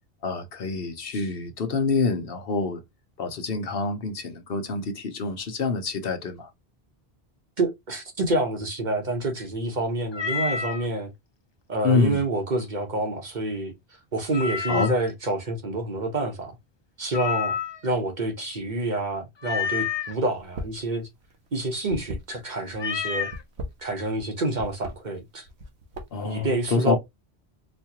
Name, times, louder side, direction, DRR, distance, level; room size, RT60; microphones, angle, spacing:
voice 1, 0.2-2.8 3.2-6.5 11.8-12.2 14.7-14.9 26.1-27.0, left 4 dB, 65° left, 1.0 m, -26 dB
voice 2, 7.6-11.1 11.7-13.7 14.1-16.5 17.0-17.6 17.8-21.1 21.5-23.3 23.8-25.5 26.2-27.0, right 2 dB, 50° right, 1.0 m, -28 dB
Meow, 10.1-10.9 14.3-15.1 17.1-17.9 19.4-20.1 22.7-23.4, left 6 dB, 35° left, 0.4 m, -29 dB
sound 1, 20.4-20.9 21.1-22.7 23.2-24.3 24.6-25.0 25.5-26.3, equal, 85° right, 1.2 m, -36 dB
4.3 x 2.3 x 2.9 m
omnidirectional pair, 1.1 m